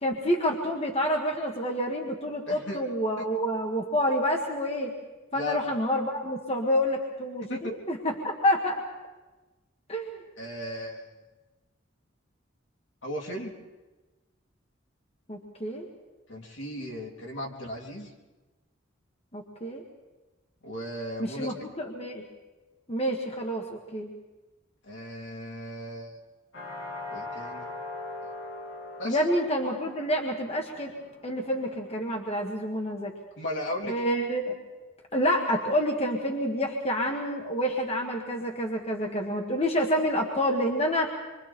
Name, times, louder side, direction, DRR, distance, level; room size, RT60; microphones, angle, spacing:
voice 1, 0.0-4.9 5.3-8.8 9.9-10.2 15.3-15.9 19.3-19.8 21.2-22.2 22.9-24.1 29.1-30.9 31.2-33.1 33.9-34.6 35.1-41.1, equal, 30° left, 1 dB, 1.8 m, -28 dB
voice 2, 2.5-2.8 3.2-3.3 5.3-5.7 7.4-7.7 10.4-11.1 13.0-13.5 16.3-18.1 20.6-21.5 24.8-26.2 27.1-27.7 29.0-29.2 33.3-34.0, left 1 dB, 70° left, -1 dB, 3.3 m, -36 dB
sound 1, 26.5-32.2, left 2 dB, 85° left, 6.9 m, -41 dB
27.0 x 24.0 x 4.4 m, 1.2 s
head